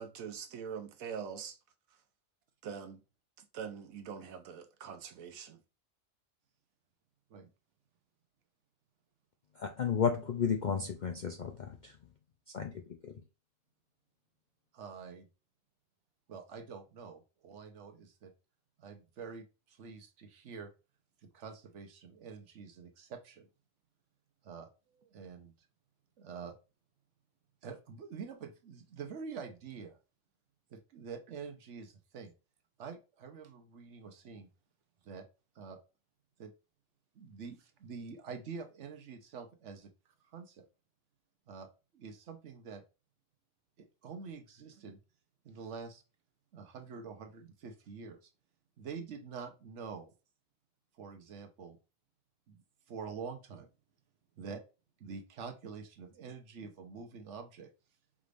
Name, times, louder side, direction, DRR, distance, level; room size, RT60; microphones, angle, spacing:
voice 1, 0.0-1.6 2.6-3.0 3.4-5.6, right 7 dB, 85° right, 1.2 m, -43 dB
voice 2, 9.6-11.9 12.5-12.7 13.0-13.1, left 7 dB, 60° left, 0.4 m, -32 dB
voice 3, 14.7-15.3 16.3-18.3 18.8-20.7 21.2-23.5 24.4-25.5 26.2-26.6 27.6-30.0 30.7-32.3 32.8-34.5 35.0-35.3 35.5-35.8 36.4-36.5 37.1-39.9 40.3-40.6 41.5-41.7 41.9-42.8 43.8-45.0 45.4-46.0 46.5-48.3 48.8-50.1 51.0-51.8 52.5-53.7 54.4-54.7 55.0-57.7, right 5 dB, 65° right, 1.1 m, -46 dB
5.0 x 3.3 x 2.5 m
omnidirectional pair, 1.4 m